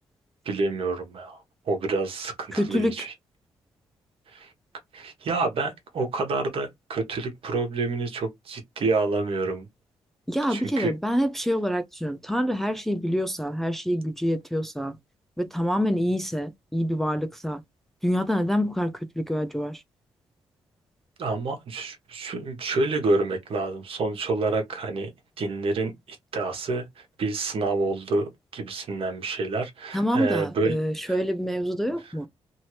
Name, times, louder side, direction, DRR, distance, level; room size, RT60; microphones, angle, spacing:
voice 1, 0.4-1.4 1.7-3.1 4.3-4.5 4.9-9.7 10.5-10.9 21.2-25.1 25.4-30.8, right 3 dB, 60° right, 1.3 m, -28 dB
voice 2, 2.5-3.1 10.3-15.0 15.4-17.6 18.0-19.8 29.9-32.3, equal, 5° left, 0.5 m, -26 dB
2.8 x 2.7 x 3.1 m
cardioid pair, 75°, 10 cm